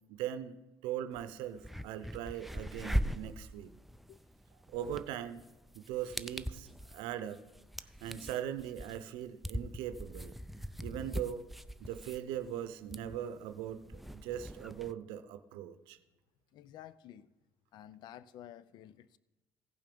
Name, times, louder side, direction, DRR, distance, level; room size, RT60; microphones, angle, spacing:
voice 1, 0.1-0.6 0.8-3.7 4.7-5.4 5.7-7.4 7.8-10.3 10.8-11.4 11.8-16.0, right 10 dB, 85° right, 11 dB, 0.6 m, -40 dB
sound 1, 1.1-1.2 1.6-14.9, equal, ahead, 0.4 m, -41 dB
voice 2, 16.5-17.3 17.7-19.2, left 11 dB, 60° left, 18 dB, 0.5 m, -52 dB
16.0 x 5.8 x 5.3 m, 1.1 s
cardioid pair, 100°, 8 cm